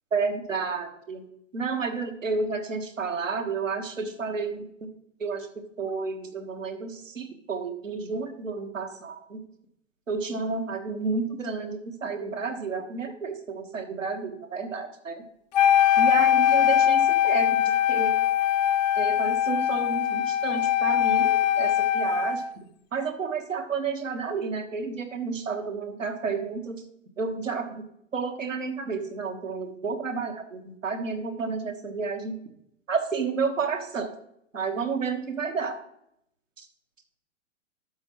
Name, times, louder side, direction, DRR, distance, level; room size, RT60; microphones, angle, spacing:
voice 1, 0.1-1.2 1.5-4.7 5.2-5.5 5.8-9.4 10.1-15.2 16.0-18.1 19.0-22.4 22.9-26.8 27.2-27.8 28.1-32.3 32.9-34.1 34.5-35.8 36.6-36.7, right 4 dB, 80° right, 4 dB, 1.4 m, -31 dB
Wind instrument woodwind instrument, 15.5-22.5, left 11 dB, 35° left, 0.5 m, -22 dB
12.0 x 7.1 x 3.1 m, 0.75 s
figure-of-eight pair, 115°, 38 cm